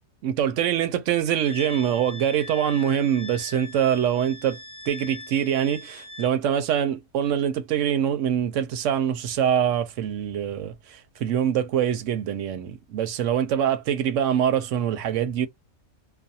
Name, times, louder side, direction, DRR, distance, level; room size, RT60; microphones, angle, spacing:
voice 1, 0.2-4.6 4.9-15.5, right 9 dB, 70° right, 0.9 m, -24 dB
Wind instrument woodwind instrument, 1.4-6.3, left 3 dB, 25° left, 0.4 m, -41 dB
2.5 x 2.2 x 2.7 m
omnidirectional pair, 1.4 m